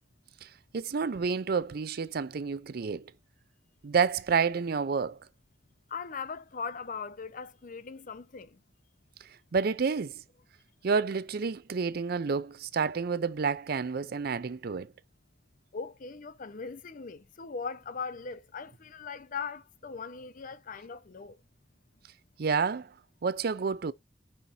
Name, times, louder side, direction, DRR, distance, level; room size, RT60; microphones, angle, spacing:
voice 1, 0.4-3.1 3.8-5.2 9.2-10.2 10.8-14.9 22.4-22.9 23.2-23.9, right 5 dB, 55° right, 0.5 m, -29 dB
voice 2, 5.9-8.6 15.7-21.4, left 5 dB, 50° left, 0.6 m, -39 dB
5.8 x 3.9 x 4.2 m
head